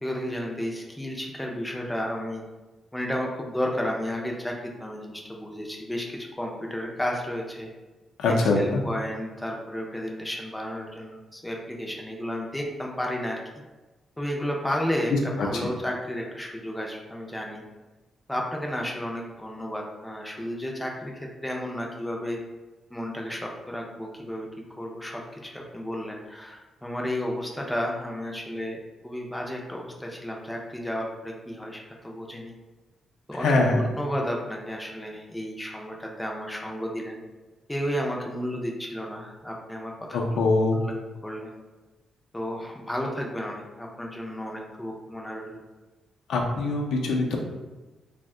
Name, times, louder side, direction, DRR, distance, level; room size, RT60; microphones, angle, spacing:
voice 1, 0.0-2.4 2.9-7.7 8.3-13.4 14.2-17.6 18.3-22.4 22.9-24.5 24.8-32.5 33.3-37.2 37.7-40.4 40.8-40.9 41.2-41.6 42.3-45.6, equal, 5° left, -1 dB, 0.4 m, -32 dB
voice 2, 8.2-8.8 15.1-15.6 33.4-33.8 40.1-40.8 46.3-47.4, left 3 dB, 85° left, 1 dB, 0.5 m, -23 dB
2.6 x 2.1 x 3.6 m, 1.2 s
cardioid pair, 145°, 0 cm